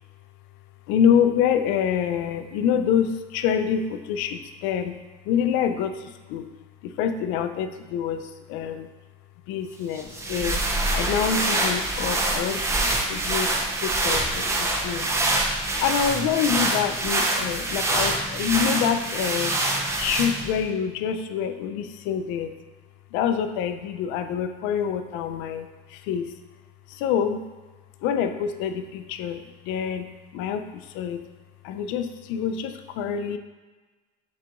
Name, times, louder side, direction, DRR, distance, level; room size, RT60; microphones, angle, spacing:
voice 1, 0.9-4.9 5.3-6.5 6.8-8.9 9.5-10.7 10.9-15.1 15.8-19.6 20.0-22.6 23.1-26.3 26.9-27.5 28.0-30.1 30.3-31.2 31.6-33.4, left 8 dB, 65° left, 9 dB, 0.4 m, -26 dB
sound 1, 9.9-20.6, right 2 dB, 15° right, 0.4 m, -25 dB
7.3 x 2.8 x 2.4 m, 1.3 s
cardioid pair, 140°, 21 cm